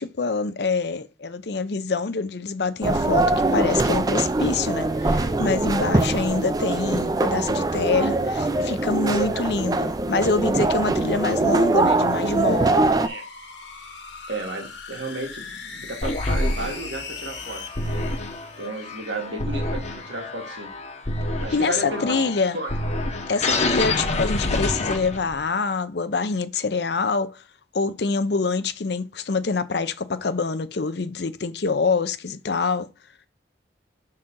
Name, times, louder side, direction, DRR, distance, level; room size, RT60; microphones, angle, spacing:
voice 1, 0.0-12.9 21.5-22.6 23.3-27.4 27.7-32.9, left 4 dB, 65° left, 0.6 m, -25 dB
sound 1, 2.8-13.1, right 2 dB, 20° right, 0.4 m, -22 dB
voice 2, 5.7-6.1 8.9-9.5 13.0-13.2 14.3-18.1 18.6-20.7 21.4-22.2 22.5-22.7, right 2 dB, 90° right, 2.0 m, -33 dB
sound 2, 11.7-19.2, left 5 dB, 85° left, 1.5 m, -40 dB
sound 3, 16.0-25.4, left 2 dB, 40° left, 0.9 m, -27 dB
6.4 x 4.3 x 3.7 m
head